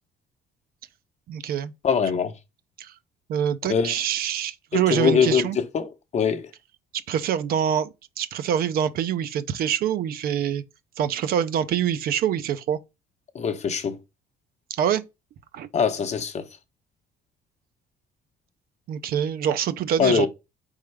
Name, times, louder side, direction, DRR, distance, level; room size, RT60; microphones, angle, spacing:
voice 1, 1.3-1.7 2.8-2.9 3.3-5.6 6.9-7.9 8.2-10.6 11.0-12.8 14.7-15.0 15.5-15.7 18.9-20.3, right 9 dB, 60° right, 0.5 m, -25 dB
voice 2, 1.8-2.4 3.7-3.9 4.7-6.5 13.3-14.0 15.7-16.5 20.0-20.3, left 6 dB, 40° left, 0.8 m, -23 dB
4.3 x 3.6 x 3.2 m
cardioid pair, 110°, 17 cm